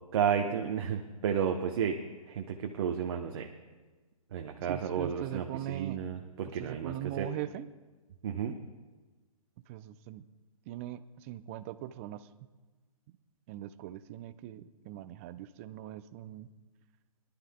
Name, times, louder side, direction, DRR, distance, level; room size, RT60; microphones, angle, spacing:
voice 1, 0.1-2.0 2.3-3.5 4.3-7.3 8.2-8.6, right 8 dB, 45° right, 3 dB, 0.8 m, -32 dB
voice 2, 4.7-6.0 6.6-7.7 9.7-10.2 10.7-12.3 13.5-16.5, right 13 dB, 25° right, 13 dB, 0.4 m, -41 dB
23.0 x 11.5 x 2.2 m, 1.3 s
figure-of-eight pair, 135°, 19 cm